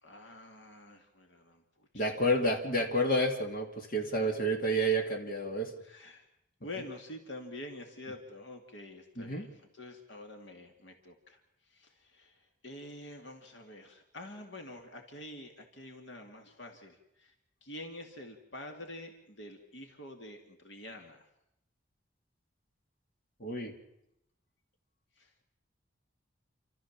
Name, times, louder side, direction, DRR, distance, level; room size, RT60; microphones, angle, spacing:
voice 1, 0.0-2.4 5.8-6.3 6.6-17.4 17.6-21.3 25.2-25.3, left 1 dB, 65° left, 4 dB, 2.5 m, -47 dB
voice 2, 1.9-5.7 9.2-9.5 23.4-23.7, equal, 45° left, 2 dB, 2.7 m, -30 dB
30.0 x 13.5 x 7.4 m, 0.82 s
head